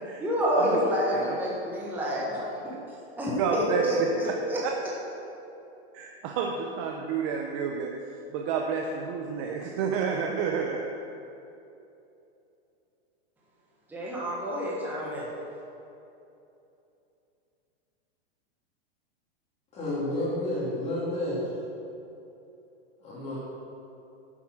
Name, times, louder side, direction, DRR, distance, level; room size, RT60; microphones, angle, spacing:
voice 1, 0.2-2.7 3.2-4.6 13.9-15.3, equal, 5° right, -6 dB, 1.3 m, -28 dB
voice 2, 3.4-4.1 4.6-4.7 5.9-7.9 8.3-10.8, right 6 dB, 30° right, 1 dB, 0.6 m, -30 dB
voice 3, 19.7-21.7 23.0-23.4, left 1 dB, 20° left, -8 dB, 2.5 m, -30 dB
9.5 x 7.3 x 6.0 m, 2.8 s
supercardioid pair, 165°, 32 cm